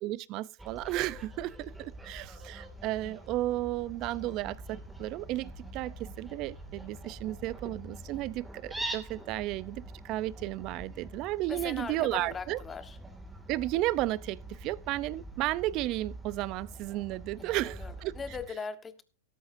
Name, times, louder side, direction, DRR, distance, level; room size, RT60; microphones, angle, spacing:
voice 1, 0.0-12.6 13.5-18.1, right 16 dB, 40° right, 0.6 m, -33 dB
Fowl, 0.6-18.5, right 1 dB, 5° right, 2.3 m, -45 dB
voice 2, 11.5-13.0 17.4-19.0, left 5 dB, 15° left, 1.3 m, -40 dB
16.5 x 13.5 x 2.6 m
hypercardioid pair, 135°, 0 cm